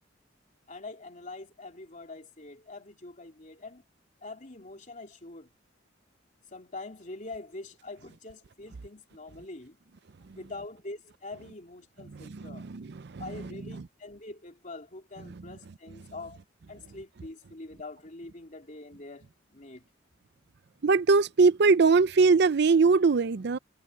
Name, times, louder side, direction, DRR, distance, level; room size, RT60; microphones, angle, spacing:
voice 1, 0.7-3.8 4.2-5.5 6.5-9.8 10.3-12.7 13.2-16.4 16.7-19.8, left 2 dB, 40° left, 3.2 m, -44 dB
voice 2, 12.5-12.8 13.1-13.2 20.8-23.6, right 4 dB, 60° right, 0.5 m, -21 dB
head